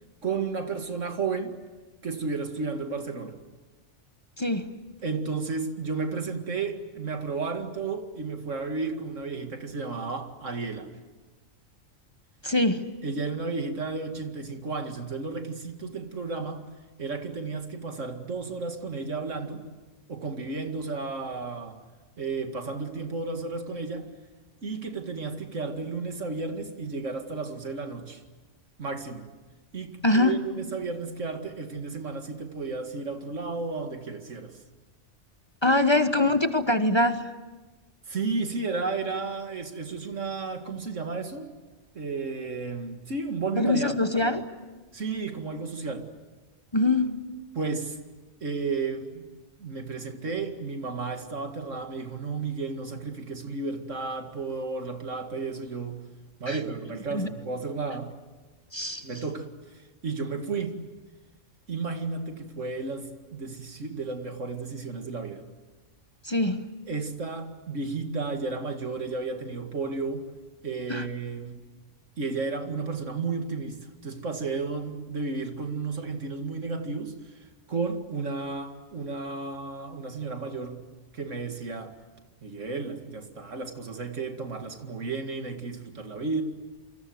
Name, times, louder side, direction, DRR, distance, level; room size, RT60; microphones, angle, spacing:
voice 1, 0.2-1.6 2.0-3.4 5.0-10.9 13.0-16.6 17.0-19.6 20.1-21.8 22.2-24.1 24.6-28.2 28.8-29.3 29.7-34.6 38.1-41.5 41.9-44.0 44.9-46.1 47.5-48.0 48.4-49.3 49.6-56.0 56.4-58.1 59.0-59.5 59.7-60.8 61.7-65.4 66.9-70.3 70.6-71.6 72.2-80.8 81.1-81.9 82.4-86.4, right 4 dB, 80° right, 5 dB, 2.5 m, -33 dB
voice 2, 4.4-4.7 12.4-12.9 30.0-30.4 35.6-37.3 43.6-44.5 46.7-47.2 56.5-56.6 57.1-57.3 58.7-59.1 66.2-66.7 70.9-71.1, left 2 dB, 25° left, 8 dB, 1.1 m, -23 dB
28.5 x 25.5 x 7.9 m, 1.2 s
omnidirectional pair, 1.3 m